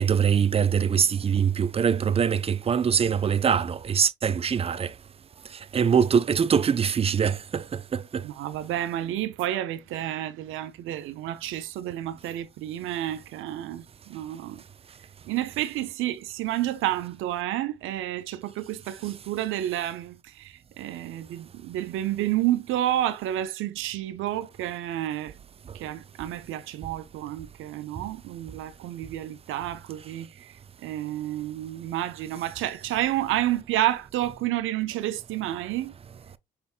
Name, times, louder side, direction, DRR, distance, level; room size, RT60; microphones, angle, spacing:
voice 1, 0.0-4.9 5.5-8.2, right 7 dB, 30° right, 0.4 m, -23 dB
voice 2, 8.2-14.6 15.3-25.3 25.7-35.9, right 13 dB, 85° right, 0.5 m, -30 dB
5.7 x 3.5 x 2.3 m
cardioid pair, 90°, 20 cm